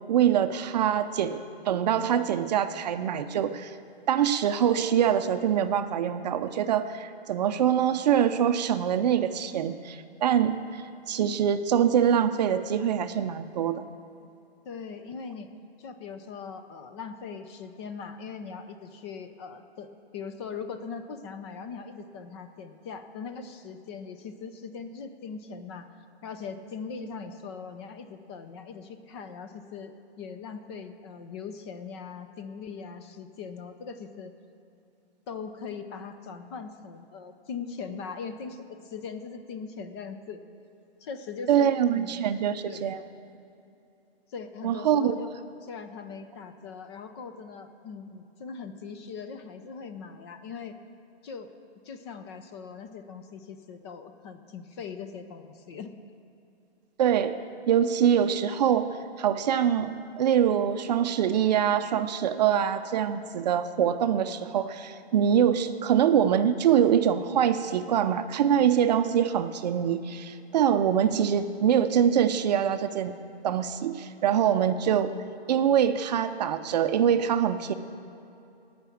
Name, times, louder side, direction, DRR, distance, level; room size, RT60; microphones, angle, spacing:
voice 1, 0.1-3.7 4.1-13.8 41.5-43.0 44.6-45.2 57.0-57.4 57.7-73.1 73.4-75.1 75.5-77.7, right 9 dB, 40° right, 9 dB, 0.6 m, -24 dB
voice 2, 14.6-15.5 15.8-25.9 26.2-34.3 35.3-40.4 41.0-42.2 42.7-42.9 44.3-45.3 45.6-50.8 51.2-51.5 51.8-55.9, left 5 dB, 25° left, 8 dB, 0.6 m, -40 dB
17.5 x 6.0 x 8.5 m, 2.7 s
hypercardioid pair, 145°, 32 cm